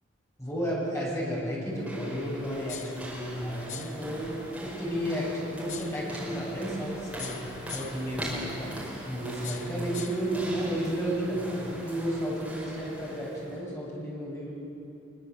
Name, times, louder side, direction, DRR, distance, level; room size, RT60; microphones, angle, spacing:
voice 1, 0.4-8.8 9.1-14.5, equal, 15° left, -5 dB, 7.8 m, -32 dB
sound 1, 1.7-13.6, equal, 5° right, 5.4 m, -41 dB
sound 2, 2.7-3.0 3.7-4.0 5.7-6.0 7.2-8.1 9.4-10.3, left 8 dB, 40° left, 1.2 m, -41 dB
24.0 x 23.0 x 8.1 m, 2.7 s
head